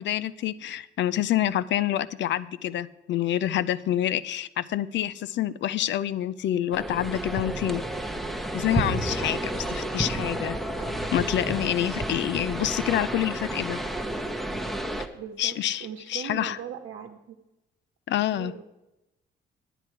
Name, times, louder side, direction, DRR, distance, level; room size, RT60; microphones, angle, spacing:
voice 1, 0.0-7.8 8.5-10.6 11.1-13.8 15.4-16.6 18.1-18.5, left 12 dB, 65° left, 17 dB, 0.5 m, -27 dB
sound 1, 6.7-15.1, right 1 dB, ahead, 1.0 m, -31 dB
voice 2, 15.1-17.4 18.3-18.6, right 9 dB, 85° right, 2 dB, 1.0 m, -40 dB
10.0 x 9.9 x 4.6 m, 0.96 s
cardioid pair, 90°, 20 cm